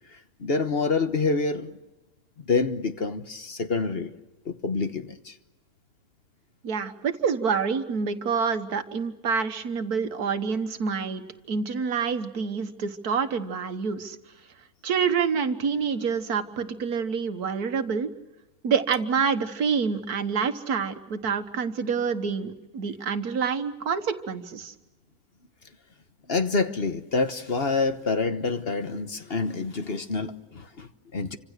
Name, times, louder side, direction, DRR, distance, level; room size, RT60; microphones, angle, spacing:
voice 1, 0.1-1.8 2.4-4.1 4.4-5.4 26.3-31.4, left 4 dB, 45° left, 9 dB, 1.4 m, -27 dB
voice 2, 6.6-14.2 14.8-18.1 18.6-24.7, right 6 dB, 90° right, 9 dB, 1.9 m, -27 dB
29.0 x 26.0 x 6.6 m, 1.0 s
omnidirectional pair, 1.6 m